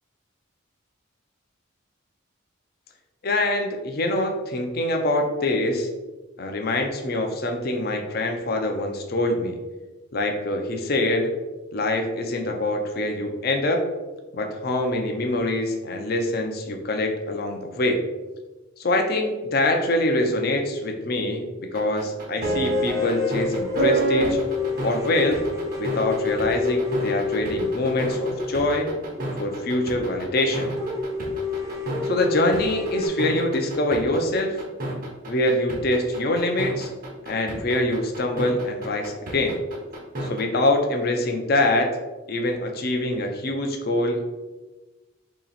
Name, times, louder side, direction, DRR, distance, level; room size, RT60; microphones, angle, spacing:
voice 1, 3.2-5.9 6.4-9.6 10.1-11.3 11.7-13.8 14.3-18.0 18.8-21.4 21.7-24.4 24.8-25.4 25.8-28.9 29.4-30.7 32.0-34.6 35.3-36.9 37.3-39.6 40.2-41.9 42.3-44.2, left 1 dB, 45° left, 4 dB, 0.5 m, -24 dB
sound 1, 21.7-40.4, right 2 dB, 45° right, 0.7 m, -29 dB
sound 2, 22.4-29.7 30.1-30.2 30.4-30.5 30.8-33.1, left 4 dB, 15° right, 0.4 m, -29 dB
2.9 x 2.9 x 4.0 m, 1.2 s
head